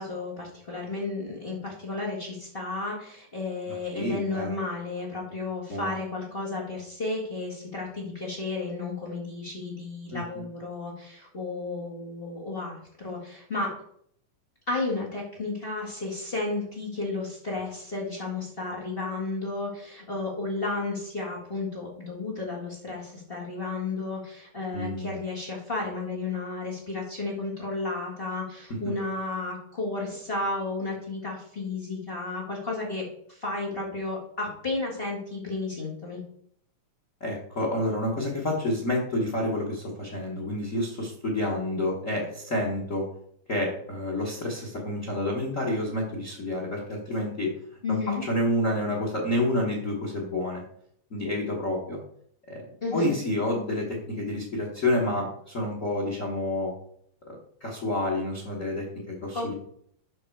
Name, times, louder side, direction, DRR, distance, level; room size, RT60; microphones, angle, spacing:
voice 1, 0.0-13.7 14.7-36.2 47.8-48.2 52.8-53.2 59.3-59.5, left 3 dB, 25° left, -3 dB, 1.3 m, -33 dB
voice 2, 3.7-4.5 5.7-5.9 10.1-10.4 24.7-25.1 37.2-43.1 43.5-47.5 47.9-50.6 51.1-52.0 52.5-52.6 52.9-56.7 57.3-59.5, left 1 dB, 75° left, 0 dB, 0.7 m, -29 dB
7.6 x 5.5 x 4.7 m, 0.66 s
omnidirectional pair, 3.8 m